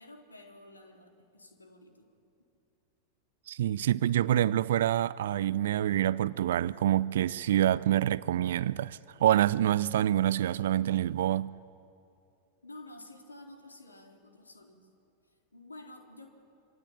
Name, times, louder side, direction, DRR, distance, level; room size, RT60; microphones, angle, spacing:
voice 1, 0.0-2.1 12.6-14.9 15.2-16.3, left 2 dB, 80° left, 3.8 m, -51 dB
voice 2, 3.5-11.5, right 12 dB, 60° right, 0.6 m, -26 dB
27.0 x 25.5 x 8.7 m
figure-of-eight pair, 90°, 0 cm